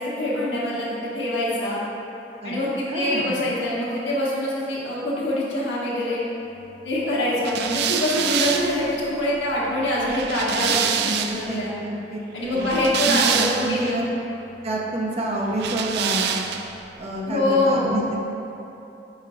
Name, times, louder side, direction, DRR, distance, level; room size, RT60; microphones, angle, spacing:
voice 1, 0.0-1.8 2.4-6.2 6.8-10.8 11.0-11.7 12.3-14.0 17.3-17.9, left 1 dB, 75° left, -6 dB, 1.4 m, -24 dB
voice 2, 2.9-3.4 11.0-12.7 13.1-14.1 14.6-16.3 16.9-18.2, right 1 dB, 35° right, -2 dB, 0.8 m, -28 dB
sound 1, 7.4-11.5 12.5-13.9 15.6-16.8, right 8 dB, 65° right, 0.3 m, -26 dB
5.6 x 3.6 x 4.9 m, 2.9 s
head